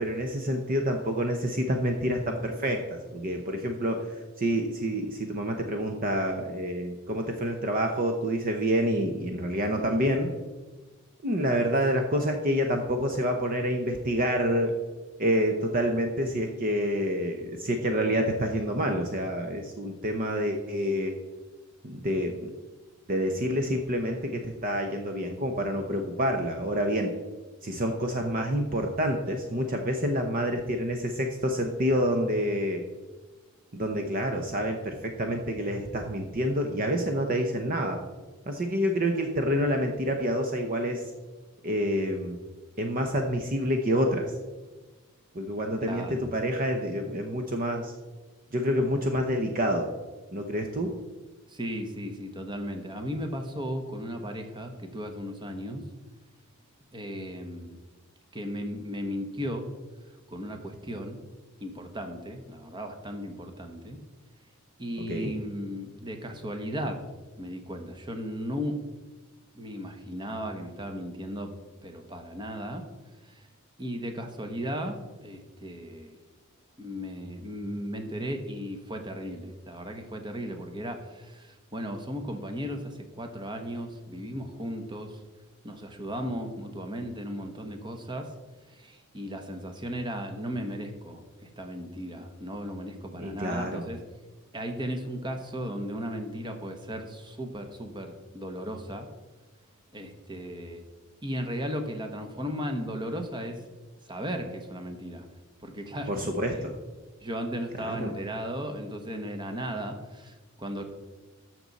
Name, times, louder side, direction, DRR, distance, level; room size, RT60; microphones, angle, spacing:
voice 1, 0.0-4.1 4.4-10.3 11.2-14.7 15.2-21.1 21.8-22.5 23.1-27.1 27.6-32.8 33.7-38.0 38.5-41.0 41.6-42.4 42.8-44.3 45.3-47.9 48.5-49.9 50.3-50.9 65.1-65.3 93.2-93.9 106.1-106.7 107.8-108.1, equal, 40° right, 4 dB, 0.8 m, -28 dB
voice 2, 45.8-46.2 51.5-55.8 56.9-57.8 58.3-59.7 60.3-61.2 61.6-64.0 64.8-67.1 67.4-68.8 69.5-71.5 71.8-72.8 73.2-73.5 73.8-76.2 76.8-85.2 85.6-88.3 88.7-94.0 94.5-99.1 99.9-100.8 101.2-103.6 104.1-105.2 105.6-106.1 106.5-106.7 107.2-110.8, equal, 20° right, 5 dB, 1.1 m, -36 dB
13.5 x 6.1 x 4.1 m, 1.2 s
head